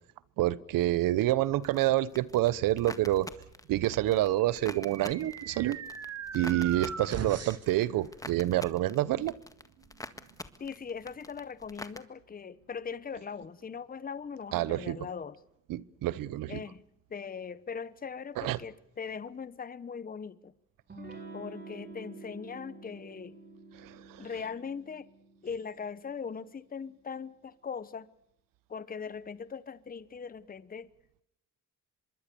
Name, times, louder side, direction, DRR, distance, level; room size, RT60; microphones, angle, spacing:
voice 1, 0.4-3.3 3.7-5.8 6.3-9.3 14.5-15.0 15.7-16.6 18.4-18.6 23.8-24.3, right 15 dB, 90° right, 0.9 m, -28 dB
sound 1, 1.6-12.0, left 2 dB, 10° left, 1.7 m, -47 dB
sound 2, 4.2-7.8, right 6 dB, 50° right, 2.3 m, -40 dB
voice 2, 10.6-15.3 16.5-16.8 17.1-20.5 21.3-23.3 24.2-25.1 25.4-28.1 28.7-30.9, left 6 dB, 25° left, 1.0 m, -40 dB
Electric guitar / Strum, 20.9-26.3, right 3 dB, 30° right, 5.0 m, -48 dB
25.0 x 22.0 x 6.9 m
cardioid pair, 90°, 32 cm